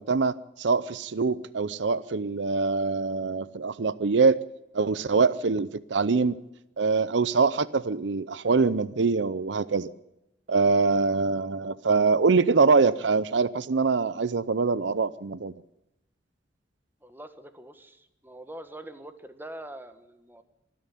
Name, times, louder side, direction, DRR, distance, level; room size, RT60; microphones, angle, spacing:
voice 1, 0.0-4.4 4.7-6.3 6.8-9.9 10.5-15.5, right 4 dB, 80° right, 18 dB, 0.6 m, -24 dB
voice 2, 17.0-20.4, right 1 dB, 10° right, 10 dB, 1.5 m, -44 dB
25.5 x 10.5 x 9.9 m, 0.92 s
head